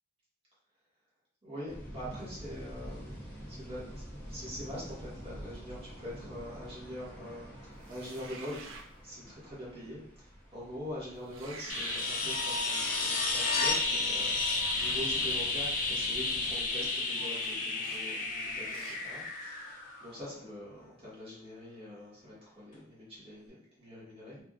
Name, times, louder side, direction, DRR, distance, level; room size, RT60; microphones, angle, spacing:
voice 1, 1.4-3.9 4.3-8.6 9.0-24.4, equal, 30° right, -8 dB, 1.3 m, -44 dB
sound 1, 1.7-16.6, equal, 10° left, 0.7 m, -48 dB
sound 2, 7.8-8.9 11.2-12.1 14.4-15.0 17.4-17.5 17.8-18.0 18.7-19.0, right 4 dB, 80° right, 0.5 m, -47 dB
sound 3, 11.7-20.4 22.7-22.8, left 3 dB, 45° left, 0.5 m, -32 dB
3.4 x 2.4 x 2.4 m, 0.66 s
head